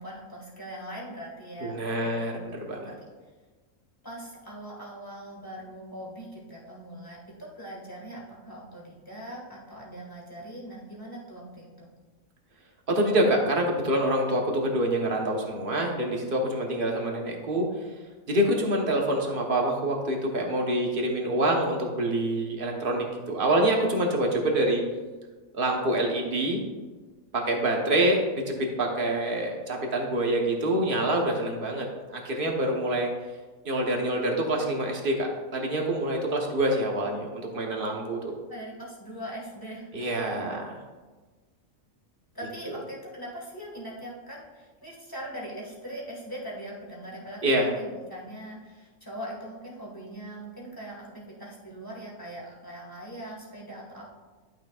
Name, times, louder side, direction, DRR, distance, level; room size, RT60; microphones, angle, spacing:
voice 1, 0.0-2.4 2.8-3.1 4.0-11.9 38.5-40.0 40.3-40.7 42.3-54.1, right 1 dB, 15° left, -4 dB, 1.8 m, -41 dB
voice 2, 1.6-2.9 12.9-17.7 18.3-24.8 25.5-26.6 27.3-33.1 33.6-38.2 39.9-40.8 47.4-47.7, right 1 dB, 40° right, 0 dB, 1.3 m, -26 dB
11.5 x 6.2 x 2.4 m, 1.3 s
omnidirectional pair, 1.4 m